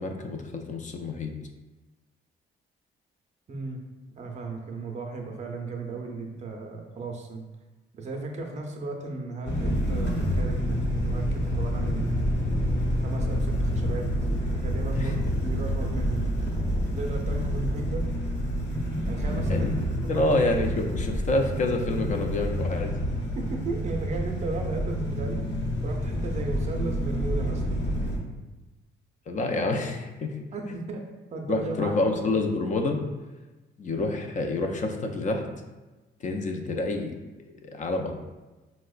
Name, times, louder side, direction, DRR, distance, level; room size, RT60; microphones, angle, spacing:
voice 1, 0.0-1.3 14.9-15.2 19.5-19.7 20.1-22.9 29.3-30.3 31.5-33.0 33.8-35.7 36.2-37.1 37.6-38.1, left 2 dB, 40° left, 3 dB, 0.4 m, -28 dB
voice 2, 3.5-3.8 4.2-7.4 7.9-12.1 13.0-14.1 14.5-16.3 16.9-18.0 19.1-19.8 20.0-20.3 23.3-25.4 25.8-27.8 30.5-31.0 31.3-32.1, right 2 dB, 35° right, 2 dB, 0.5 m, -35 dB
sound 1, 9.5-28.2, equal, 60° left, 0.9 m, -28 dB
4.4 x 2.1 x 2.4 m, 1.2 s
cardioid pair, 90°, 20 cm